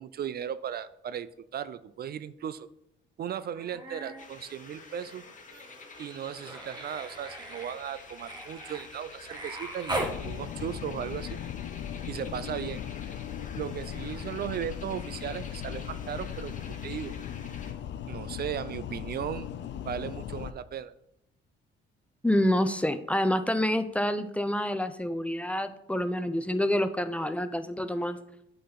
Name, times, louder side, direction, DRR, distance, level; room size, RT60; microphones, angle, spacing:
voice 1, 0.0-2.7 3.2-5.2 6.0-11.4 12.1-12.8 13.6-17.1 18.1-19.5 19.8-20.9, right 9 dB, 50° right, 15 dB, 0.4 m, -36 dB
Human voice, 3.5-4.3 4.6-10.2 11.8-11.9, right 1 dB, 20° right, 1.7 m, -39 dB
sound 1, 4.2-17.7, left 4 dB, 40° left, 1.3 m, -48 dB
sound 2, 9.9-20.5, left 9 dB, 65° left, 0.6 m, -38 dB
voice 2, 22.2-28.2, left 1 dB, 5° left, 11 dB, 0.6 m, -27 dB
8.3 x 4.0 x 5.8 m, 0.82 s
cardioid pair, 90°, 20 cm